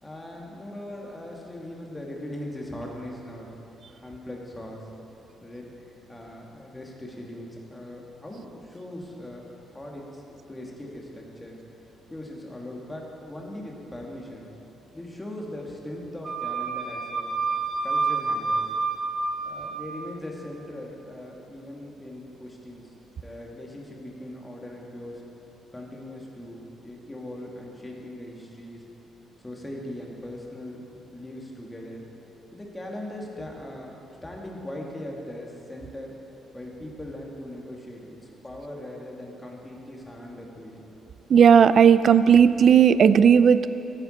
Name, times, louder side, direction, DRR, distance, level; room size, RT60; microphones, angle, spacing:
voice 1, 0.0-3.5 3.9-4.9 5.4-9.5 9.7-11.6 12.1-14.5 14.9-17.3 17.8-18.7 19.4-22.9 23.2-25.2 25.7-28.8 29.4-32.1 32.5-36.2 36.5-38.2 38.4-40.8, left 1 dB, 15° left, -1 dB, 2.1 m, -40 dB
Wind instrument woodwind instrument, 16.2-19.9, right 4 dB, 40° right, 1.5 m, -28 dB
voice 2, 41.3-43.7, right 7 dB, 55° right, 15 dB, 0.4 m, -15 dB
13.0 x 10.0 x 4.4 m, 3.0 s
cardioid pair, 90°, 0 cm